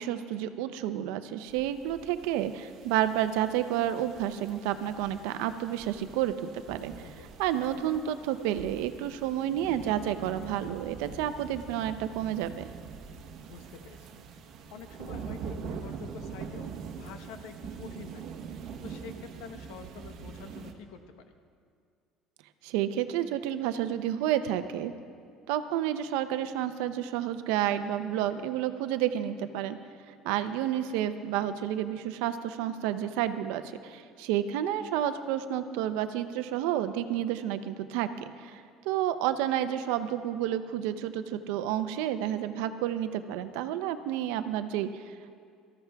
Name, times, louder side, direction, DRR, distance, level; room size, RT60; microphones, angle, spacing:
voice 1, 0.0-6.9 7.4-12.7 22.6-24.9 25.5-29.8 30.1-45.0, right 11 dB, 90° right, 10 dB, 0.7 m, -30 dB
sound 1, 1.5-20.7, right 6 dB, 45° right, 1.0 m, -44 dB
voice 2, 13.4-14.1 14.7-18.2 18.8-21.4 30.4-30.5, left 6 dB, 75° left, 7 dB, 1.0 m, -47 dB
18.5 x 14.0 x 3.5 m, 2.3 s
cardioid pair, 165°, 0 cm